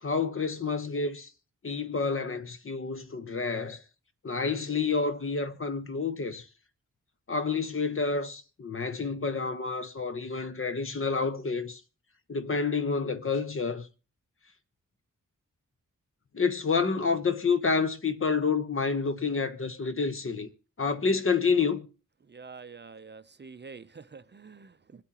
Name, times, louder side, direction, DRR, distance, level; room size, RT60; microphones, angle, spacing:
voice 1, 0.0-1.3 1.6-3.8 4.2-6.5 7.3-11.8 12.3-13.9 16.3-20.5 20.8-21.9, left 4 dB, 40° left, 1.1 m, -29 dB
voice 2, 22.3-25.0, right 5 dB, 35° right, 0.6 m, -47 dB
25.0 x 8.6 x 2.9 m
wide cardioid pair, 145°, 32 cm